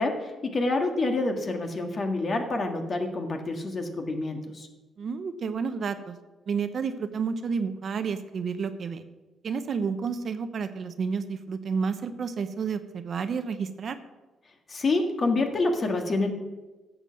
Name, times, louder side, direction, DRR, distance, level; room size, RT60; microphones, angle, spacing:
voice 1, 0.0-4.7 14.7-16.3, left 2 dB, 40° left, 4 dB, 1.7 m, -27 dB
voice 2, 5.0-6.2 6.5-9.0 9.4-14.0, right 5 dB, 50° right, 10 dB, 0.8 m, -30 dB
10.5 x 7.4 x 6.4 m, 1.2 s
cardioid pair, 90°, 0 cm